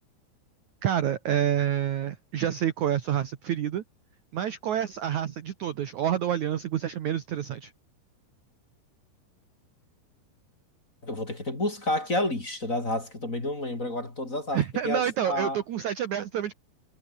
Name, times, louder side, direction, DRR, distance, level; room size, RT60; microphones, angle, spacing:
voice 1, 0.8-3.8 4.3-7.7 14.5-16.5, right 10 dB, 60° right, 2.1 m, -28 dB
voice 2, 11.0-15.6, left 1 dB, 20° left, 4.1 m, -30 dB
omnidirectional pair, 4.9 m